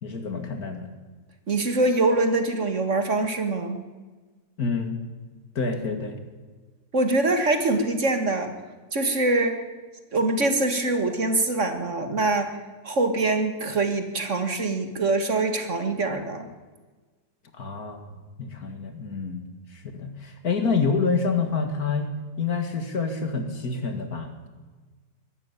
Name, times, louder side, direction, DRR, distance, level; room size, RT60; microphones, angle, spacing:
voice 1, 0.0-0.9 4.6-5.0 5.6-6.2 17.5-19.4 19.7-22.1 22.4-24.5, left 4 dB, 60° left, 7 dB, 2.5 m, -28 dB
voice 2, 1.5-3.8 6.9-8.5 8.9-9.6 10.1-12.5 12.8-16.5, right 2 dB, 45° right, 7 dB, 2.1 m, -24 dB
22.0 x 12.5 x 9.8 m, 1.3 s
omnidirectional pair, 1.8 m